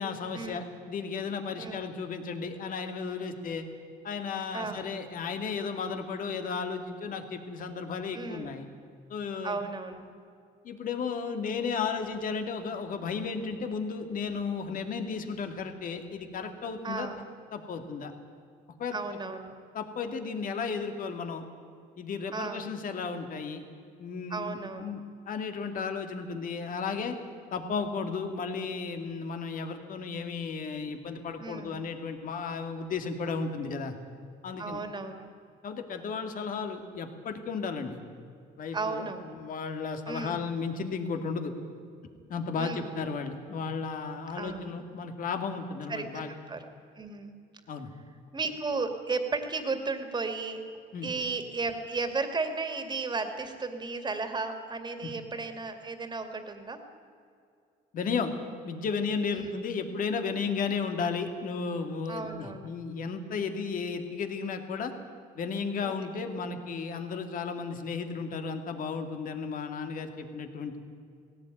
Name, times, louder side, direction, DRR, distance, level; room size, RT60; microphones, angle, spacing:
voice 1, 0.0-3.7 4.0-8.7 9.1-9.6 10.6-17.1 17.5-18.1 18.8-19.0 19.7-21.4 22.0-23.6 24.0-25.0 25.3-27.2 27.5-33.9 34.4-34.8 35.6-38.0 38.6-41.5 42.3-46.3 47.7-47.9 50.9-51.1 55.0-55.1 57.9-58.3 58.6-64.9 65.3-70.8, left 5 dB, 55° left, 6 dB, 2.4 m, -34 dB
voice 2, 8.1-8.6 9.4-10.1 16.8-17.2 18.9-19.5 22.3-22.7 24.3-24.9 31.4-31.8 34.6-35.3 38.7-39.4 40.1-40.4 42.6-42.9 44.3-44.8 45.9-46.2 46.5-46.6 47.0-47.4 48.3-50.6 51.0-56.8 59.3-59.5 62.1-62.7 65.8-65.9, right 4 dB, 25° right, 7 dB, 2.4 m, -34 dB
18.5 x 17.0 x 9.2 m, 2.3 s
cardioid pair, 110°, 17 cm